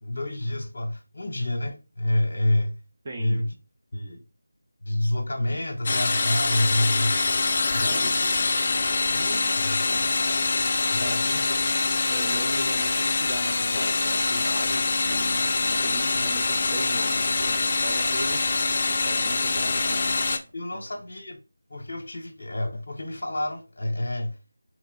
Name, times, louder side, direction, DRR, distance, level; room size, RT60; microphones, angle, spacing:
voice 1, 0.0-2.8 3.2-3.5 3.9-4.2 4.8-7.4 7.7-8.2 9.1-9.8 10.9-11.5 20.5-21.4 21.7-24.4, left 1 dB, 55° left, 0.8 m, -28 dB
voice 2, 3.0-3.4 7.8-8.1 9.8-10.1 11.0-11.3 12.1-18.7 19.0-20.4 20.7-20.9, right 2 dB, 30° right, 0.6 m, -38 dB
sound 1, 5.9-20.4, left 3 dB, 40° left, 0.5 m, -24 dB
3.3 x 3.0 x 3.9 m
figure-of-eight pair, 165°, 0 cm